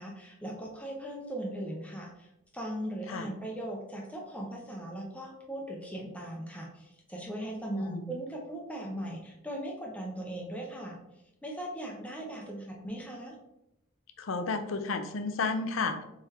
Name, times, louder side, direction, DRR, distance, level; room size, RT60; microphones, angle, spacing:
voice 1, 0.0-2.3 2.5-11.0 11.4-13.3, right 1 dB, 5° left, -2 dB, 0.5 m, -39 dB
voice 2, 7.7-8.1 14.2-16.0, left 4 dB, 85° left, 8 dB, 0.5 m, -32 dB
4.4 x 3.7 x 2.8 m, 0.85 s
head